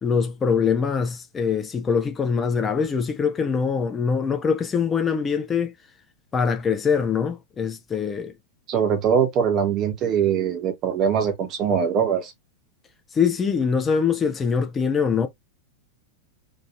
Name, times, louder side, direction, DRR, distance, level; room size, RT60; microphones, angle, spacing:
voice 1, 0.0-5.7 6.3-8.3 13.1-15.3, left 6 dB, 20° left, 0.4 m, -23 dB
voice 2, 8.7-12.3, right 7 dB, 35° right, 0.9 m, -22 dB
2.9 x 2.4 x 2.4 m
figure-of-eight pair, 90°, 0 cm